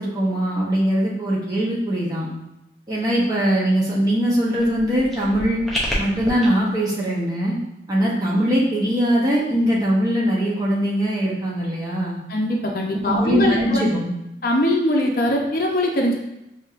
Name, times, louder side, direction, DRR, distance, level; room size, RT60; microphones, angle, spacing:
voice 1, 0.0-2.3 2.9-5.6 6.0-7.6 7.9-12.2 13.0-14.1, equal, 20° right, -6 dB, 0.9 m, -21 dB
sound 1, 4.5-6.5, equal, ahead, 0.6 m, -29 dB
voice 2, 12.3-13.9 14.4-16.1, left 1 dB, 55° left, 0 dB, 0.6 m, -21 dB
5.9 x 2.8 x 2.5 m, 0.87 s
head